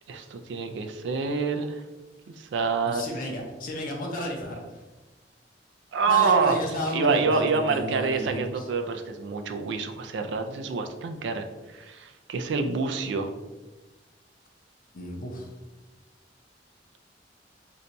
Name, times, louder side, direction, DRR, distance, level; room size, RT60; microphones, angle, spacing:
voice 1, 0.1-1.8 2.4-3.0 5.9-6.6 6.9-11.5 11.7-13.3, right 5 dB, 75° right, 6 dB, 0.3 m, -26 dB
voice 2, 2.9-4.8 6.1-8.7 14.9-15.5, left 1 dB, 50° left, 0 dB, 0.6 m, -32 dB
2.6 x 2.2 x 3.9 m, 1.2 s
head